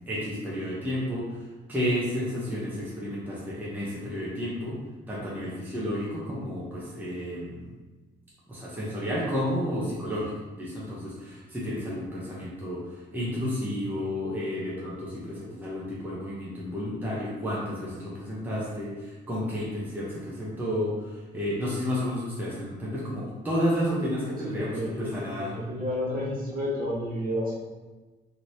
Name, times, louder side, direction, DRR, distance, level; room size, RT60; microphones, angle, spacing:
voice 1, 0.1-1.4 1.7-4.7 5.1-7.7 8.5-10.3 10.6-12.8 13.1-25.5, equal, 10° right, -7 dB, 0.8 m, -31 dB
voice 2, 24.4-25.1 25.4-27.7, equal, 45° right, -7 dB, 1.3 m, -31 dB
2.9 x 2.9 x 2.8 m, 1.2 s
cardioid pair, 90°, 20 cm